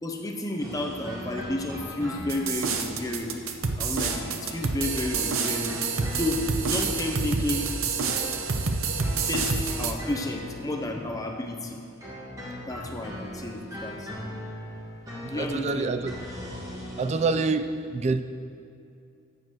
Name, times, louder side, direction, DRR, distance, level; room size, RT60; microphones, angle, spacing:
voice 1, 0.0-3.4 3.8-7.7 9.3-11.8 12.7-14.1 15.3-15.9, left 1 dB, 15° left, 2 dB, 0.6 m, -31 dB
sound 1, 0.6-11.7 12.0-17.5, left 1 dB, 15° right, 1.7 m, -40 dB
sound 2, 2.3-9.9, right 4 dB, 80° right, 0.7 m, -28 dB
voice 2, 15.2-16.1 17.0-18.2, right 4 dB, 30° right, 9 dB, 0.3 m, -26 dB
7.6 x 7.5 x 6.2 m, 2.5 s
head